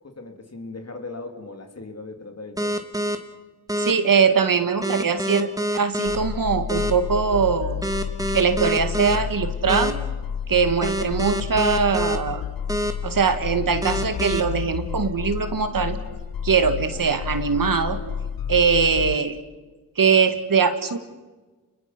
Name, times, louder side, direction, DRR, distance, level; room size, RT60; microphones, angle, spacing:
voice 1, 0.0-2.8, left 3 dB, 45° left, 5 dB, 3.1 m, -38 dB
sound 1, 2.6-3.2 3.7-3.9 4.8-6.2 6.7-6.9 7.8-9.2 9.7-9.9 10.8-12.2 12.7-12.9 13.8-14.4, right 1 dB, 10° right, 2.4 m, -25 dB
voice 2, 3.8-7.8 8.3-10.0 10.5-12.5 13.0-16.0 16.4-18.0 18.5-19.4 20.0-21.0, right 5 dB, 70° right, 8 dB, 1.9 m, -21 dB
sound 2, 6.1-19.2, left 8 dB, 75° left, 0.8 m, -30 dB
29.0 x 21.5 x 6.0 m, 1.2 s
cardioid pair, 50°, 34 cm